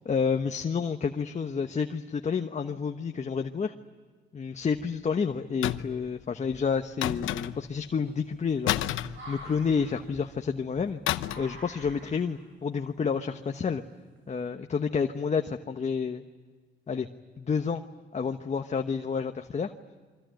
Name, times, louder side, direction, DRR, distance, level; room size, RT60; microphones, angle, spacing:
voice 1, 0.0-3.7 4.3-11.0 11.4-13.8 14.3-16.2 16.9-17.1 17.4-17.8 18.1-19.7, left 6 dB, 35° left, 5 dB, 1.2 m, -29 dB
sound 1, 4.6-5.2 5.8-5.9 6.4-14.5, equal, 75° right, 7.9 m, -49 dB
sound 2, 5.6-6.1 7.0-7.8 8.7-9.8 11.1-11.6 11.8-12.1, left 13 dB, 85° left, 0.9 m, -30 dB
27.0 x 24.0 x 9.2 m, 1.5 s
cardioid pair, 90°, 20 cm